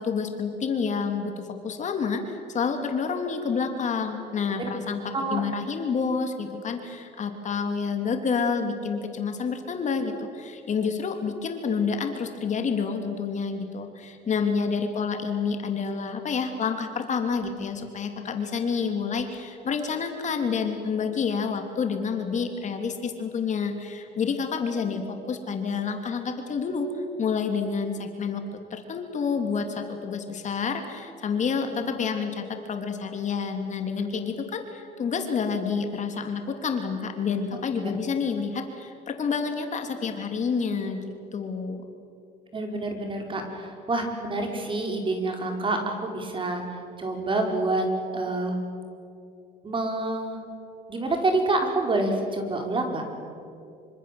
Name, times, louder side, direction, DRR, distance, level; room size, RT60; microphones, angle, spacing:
voice 1, 0.0-26.9 27.2-28.4 28.7-41.0 41.3-41.8, left 5 dB, 45° left, 5 dB, 3.0 m, -28 dB
voice 2, 42.5-46.6 47.0-47.8 48.1-48.6 49.6-50.4 50.9-53.0, right 2 dB, 30° right, 3 dB, 5.1 m, -27 dB
26.0 x 25.5 x 7.8 m, 2.5 s
cardioid pair, 110°, 17 cm